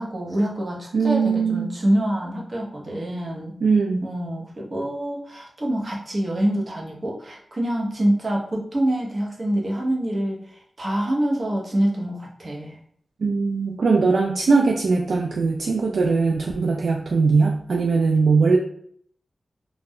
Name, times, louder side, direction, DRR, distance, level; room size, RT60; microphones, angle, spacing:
voice 1, 0.0-3.6 4.0-12.8, right 1 dB, 45° right, -3 dB, 0.9 m, -26 dB
voice 2, 0.9-1.7 3.6-4.0 13.2-18.6, right 4 dB, 85° right, 0 dB, 0.3 m, -20 dB
2.4 x 2.2 x 3.5 m, 0.64 s
wide cardioid pair, 75°, 0 cm